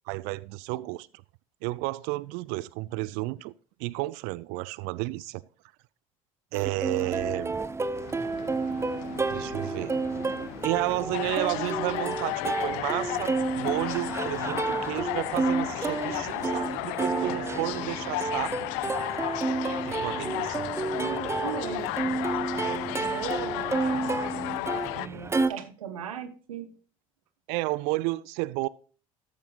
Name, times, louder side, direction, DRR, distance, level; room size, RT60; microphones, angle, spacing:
voice 1, 0.1-1.1 1.6-3.5 3.8-5.4 6.5-7.6 9.3-9.9 10.6-18.6 19.8-20.7 27.5-28.7, right 20 dB, 60° right, 0.4 m, -32 dB
Plucked string instrument, 6.5-25.5, right 3 dB, 15° right, 0.7 m, -31 dB
sound 1, 7.9-25.1, left 20 dB, 60° left, 0.4 m, -34 dB
voice 2, 17.1-17.6 19.9-20.3 20.6-22.2 22.5-24.6 24.9-26.7, right 8 dB, 80° right, 1.2 m, -39 dB
13.5 x 8.8 x 2.4 m
hypercardioid pair, 65°, 18 cm